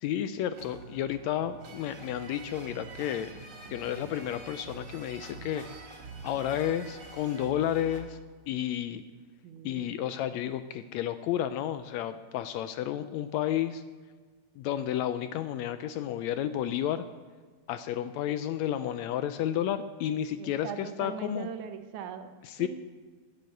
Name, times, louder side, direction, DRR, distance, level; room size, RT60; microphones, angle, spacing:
voice 1, 0.0-3.3 3.7-5.7 6.2-8.2 8.5-9.0 9.6-13.8 14.6-17.0 17.7-21.5 22.4-22.7, left 11 dB, 80° left, 11 dB, 1.7 m, -31 dB
sound 1, 0.5-8.0, right 4 dB, 40° right, 2.4 m, -46 dB
voice 2, 9.4-9.9 20.4-22.3 22.6-22.7, right 7 dB, 80° right, 9 dB, 2.3 m, -40 dB
11.0 x 7.4 x 8.1 m, 1.4 s
omnidirectional pair, 3.4 m